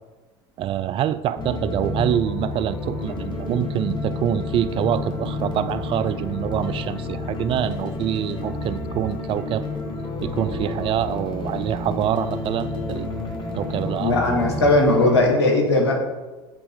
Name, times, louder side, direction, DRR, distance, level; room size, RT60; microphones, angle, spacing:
voice 1, 0.6-9.7 10.2-13.2 13.6-14.1, right 11 dB, 40° right, 13 dB, 0.4 m, -25 dB
sound 1, 1.4-15.2, left 2 dB, 35° left, 1.5 m, -30 dB
voice 2, 14.0-15.9, left 2 dB, 80° left, 2 dB, 1.2 m, -18 dB
7.4 x 3.5 x 4.9 m, 1.2 s
hypercardioid pair, 70°, 14 cm